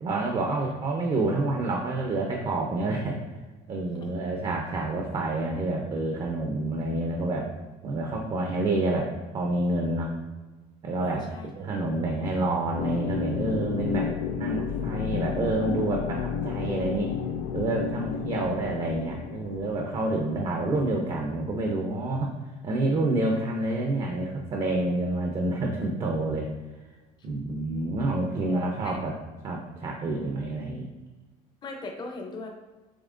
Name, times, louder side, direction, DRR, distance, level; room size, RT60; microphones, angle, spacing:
voice 1, 0.0-3.2 3.7-7.5 7.8-10.1 10.8-11.2 11.6-14.1 14.4-17.1 17.5-22.3 22.6-26.5 27.2-29.1 29.4-30.9, right 2 dB, 35° right, 1 dB, 0.6 m, -28 dB
voice 2, 11.0-11.5 18.0-18.1 28.4-29.0 31.6-32.5, left 3 dB, 30° left, 2 dB, 0.7 m, -40 dB
sound 1, 12.8-21.3, left 7 dB, 90° left, 0.4 m, -32 dB
7.2 x 3.0 x 2.5 m, 1.2 s
cardioid pair, 140°, 16 cm